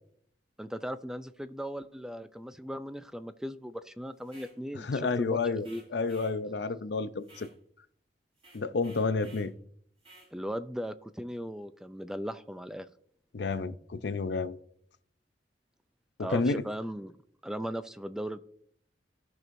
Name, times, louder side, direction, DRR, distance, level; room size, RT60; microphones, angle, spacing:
voice 1, 0.6-5.8 10.3-12.9 16.2-17.2 17.4-18.4, equal, 5° right, 0.4 m, -38 dB
sound 1, 4.2-4.6 5.6-6.4 7.2-7.6 8.4-9.5 10.0-10.3, right 1 dB, 30° right, 3.5 m, -55 dB
voice 2, 4.8-7.5 8.5-9.5 13.3-14.6 16.2-16.6, left 4 dB, 65° left, 0.5 m, -30 dB
16.5 x 6.1 x 2.6 m
head